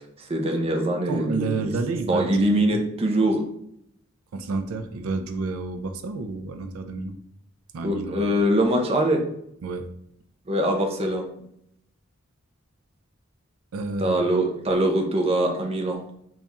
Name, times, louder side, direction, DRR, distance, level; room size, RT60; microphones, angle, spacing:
voice 1, 0.3-1.7 2.1-3.4 7.8-9.2 10.5-11.3 14.0-16.0, right 1 dB, 30° right, 2 dB, 0.5 m, -23 dB
voice 2, 1.1-2.8 4.3-7.2 7.7-8.3 9.6-9.9 13.7-14.2, right 3 dB, 80° right, 7 dB, 0.4 m, -30 dB
3.5 x 2.4 x 4.0 m, 0.73 s
head